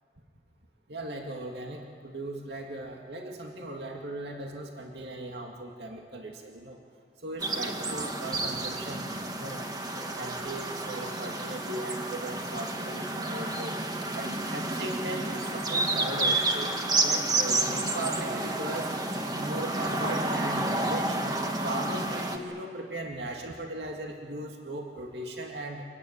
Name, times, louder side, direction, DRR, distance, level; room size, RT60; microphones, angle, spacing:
voice 1, 0.9-6.8 7.2-9.6 9.9-13.8 14.1-16.7 17.0-18.9 19.4-21.2 21.6-25.8, right 1 dB, 75° right, 1 dB, 2.4 m, -38 dB
sound 1, 7.4-22.4, right 2 dB, 20° right, 1.8 m, -30 dB
26.5 x 22.0 x 9.9 m, 2.1 s
head